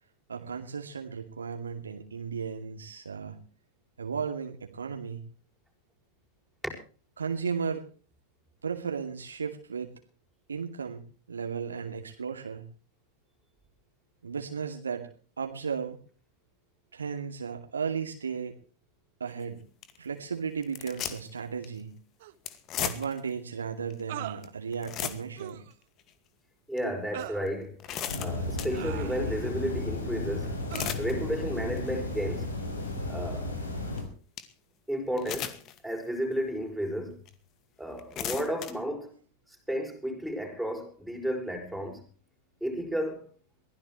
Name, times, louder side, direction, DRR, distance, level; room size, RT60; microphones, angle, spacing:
voice 1, 0.3-3.4 4.0-5.2 7.2-7.8 8.6-10.0 10.5-12.6 14.2-15.1 15.4-16.0 16.9-18.6 19.2-19.6 20.0-22.0 22.8-25.6, right 6 dB, 75° right, 2.5 m, -35 dB
sound 1, 19.3-19.4 19.8-20.0 20.6-21.4 21.6-21.8 22.5-23.3 23.9-24.0 24.4-24.5 24.7-25.5 26.0-26.1 26.8-26.9 27.5-28.8 30.5-31.1 31.6-31.9 32.4-32.5 34.0-34.1 34.4-34.5 35.2-35.8 36.3-36.4 37.3-37.4 37.9-38.7, left 10 dB, 35° left, 2.0 m, -35 dB
sound 2, 22.2-22.3 24.1-24.4 25.4-25.7 27.1-27.4 28.7-29.5 30.7-30.9, right 13 dB, 55° right, 1.4 m, -40 dB
voice 2, 26.7-27.8 28.2-30.6 31.0-32.5 33.1-33.5 34.9-35.6 35.8-37.2 37.8-39.1 39.5-42.0 42.6-43.3, equal, ahead, 6.7 m, -32 dB
sound 3, 28.1-34.0, left 2 dB, 75° left, 5.9 m, -34 dB
23.0 x 16.0 x 3.2 m
figure-of-eight pair, 90°, 0 cm